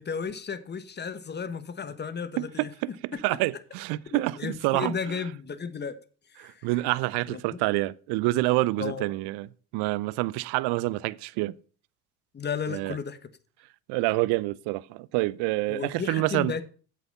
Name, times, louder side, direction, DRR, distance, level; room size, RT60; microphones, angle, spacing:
voice 1, 0.0-2.7 3.1-3.2 4.1-6.0 6.4-6.7 7.3-7.6 8.8-9.0 12.3-13.2 15.7-16.6, left 6 dB, 20° left, 1.2 m, -34 dB
voice 2, 2.4-2.7 3.2-4.9 6.4-9.5 9.7-11.5 12.7-12.9 13.9-16.5, right 20 dB, 60° right, 0.7 m, -27 dB
8.5 x 7.8 x 5.4 m
hypercardioid pair, 75°, 46 cm